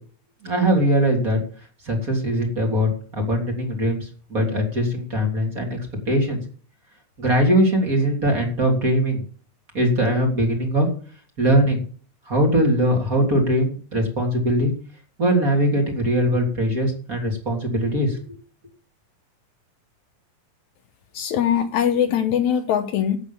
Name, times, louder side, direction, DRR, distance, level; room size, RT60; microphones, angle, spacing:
voice 1, 0.4-1.4 1.8-2.9 3.2-5.8 6.1-6.4 7.2-9.2 9.7-10.9 11.4-11.8 12.3-14.7 15.2-18.2, equal, 25° right, 1 dB, 3.5 m, -21 dB
voice 2, 21.1-23.2, left 9 dB, 70° left, 8 dB, 2.2 m, -21 dB
11.5 x 8.9 x 7.3 m, 0.43 s
omnidirectional pair, 3.7 m